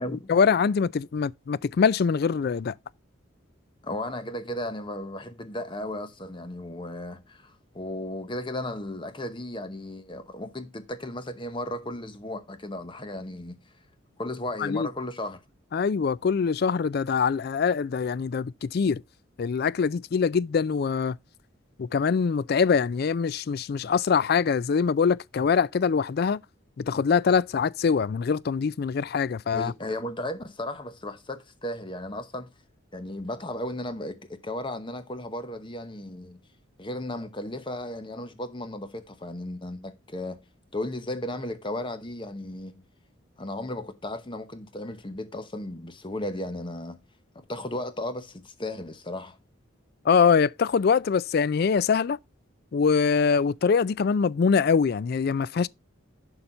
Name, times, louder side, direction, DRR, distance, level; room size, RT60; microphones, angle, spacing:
voice 1, 0.1-2.7 14.6-14.9 15.7-19.0 19.4-21.2 21.8-26.4 26.8-29.7 50.1-52.2 52.7-55.7, left 6 dB, 50° left, 0.3 m, -23 dB
voice 2, 3.8-13.6 14.2-15.4 29.5-32.5 32.9-36.4 36.8-40.4 40.7-42.8 43.4-47.0 47.3-49.4, left 1 dB, 25° left, 0.9 m, -35 dB
11.5 x 4.0 x 4.3 m
head